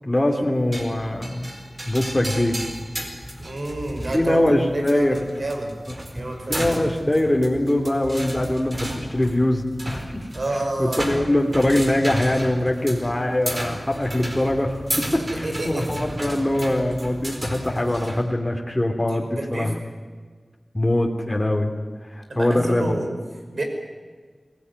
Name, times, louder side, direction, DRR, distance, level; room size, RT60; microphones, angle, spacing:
voice 1, 0.0-1.5 1.8-2.6 4.1-5.2 6.5-10.3 10.8-14.8 15.1-19.7 20.7-21.7 22.1-23.0, left 1 dB, 20° left, 1 dB, 3.0 m, -22 dB
sound 1, 0.7-18.2, right 1 dB, 35° right, 4.5 m, -33 dB
voice 2, 3.4-4.4 4.7-5.8 6.1-6.7 10.3-11.0 15.3-15.9 19.2-19.7 22.3-23.1 23.5-23.6, right 1 dB, 65° right, 3 dB, 5.7 m, -29 dB
24.0 x 17.5 x 9.6 m, 1.5 s
wide cardioid pair, 60°, 0 cm